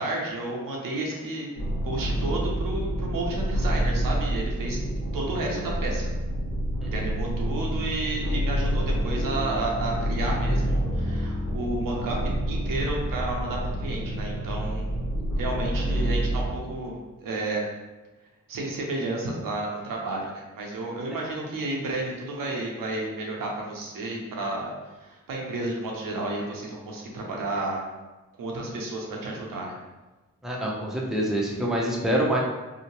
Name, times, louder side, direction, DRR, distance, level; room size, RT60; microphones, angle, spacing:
voice 1, 0.0-1.5 1.8-4.8 5.1-6.1 6.8-12.2 12.5-15.0 15.3-17.6 18.5-27.9 28.4-29.8, right 2 dB, 80° right, -1 dB, 0.6 m, -31 dB
sound 1, 1.5-16.5, right 1 dB, 60° left, 1.0 m, -28 dB
voice 2, 30.4-32.4, right 1 dB, ahead, -4 dB, 0.6 m, -26 dB
2.7 x 2.1 x 2.9 m, 1.1 s
cardioid pair, 50°, 33 cm